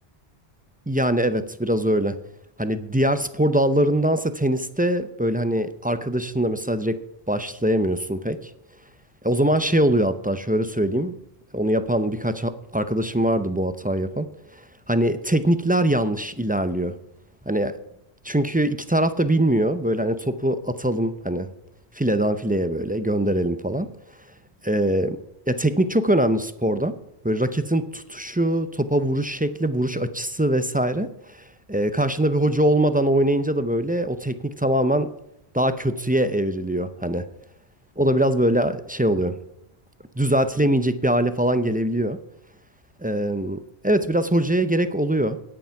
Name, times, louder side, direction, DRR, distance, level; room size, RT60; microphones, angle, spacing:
voice 1, 0.9-2.2 2.6-7.0 7.3-8.5 9.2-11.1 11.5-14.3 14.9-16.9 17.5-17.7 18.2-21.5 22.0-23.9 24.6-25.2 25.5-26.9 27.2-31.1 31.7-35.1 35.5-37.2 38.0-39.4 40.2-42.2 43.0-45.4, right 1 dB, 10° right, 11 dB, 0.4 m, -22 dB
10.0 x 9.1 x 5.8 m, 0.81 s
omnidirectional pair, 1.1 m